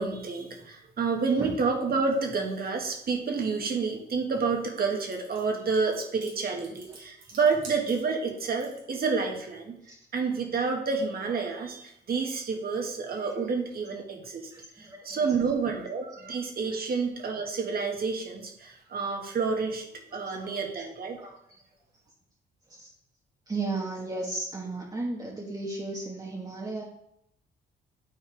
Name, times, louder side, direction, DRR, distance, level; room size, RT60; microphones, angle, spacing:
voice 1, 0.0-9.8 10.1-21.2, right 4 dB, 50° right, 2 dB, 1.8 m, -29 dB
sound 1, 4.8-8.9, right 3 dB, 85° right, 2.9 m, -48 dB
voice 2, 14.5-15.2 20.1-20.8 21.2-21.3 22.7-22.9 23.5-26.8, right 3 dB, 20° right, -3 dB, 1.6 m, -35 dB
12.0 x 4.5 x 3.5 m, 0.76 s
cardioid pair, 90°, 20 cm